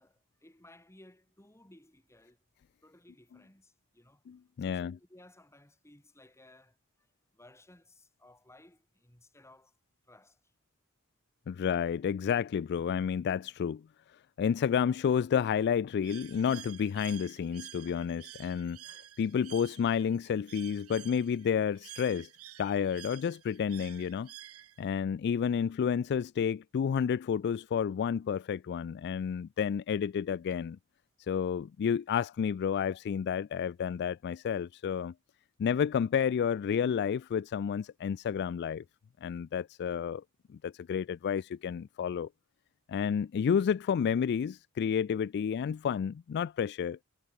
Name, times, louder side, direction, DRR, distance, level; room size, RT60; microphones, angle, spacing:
voice 1, 0.0-2.4 2.8-4.2 4.6-7.1 7.3-9.8 10.0-10.5 19.0-19.1, left 1 dB, 15° left, 3.2 m, -59 dB
voice 2, 4.3-5.0 11.5-13.8 14.4-22.3 22.6-24.3 24.8-30.8 31.2-35.1 35.6-38.8 39.2-40.2 40.5-42.3 42.9-47.0, left 7 dB, 50° left, 0.3 m, -30 dB
Bird, 16.0-25.0, right 14 dB, 85° right, 1.1 m, -50 dB
head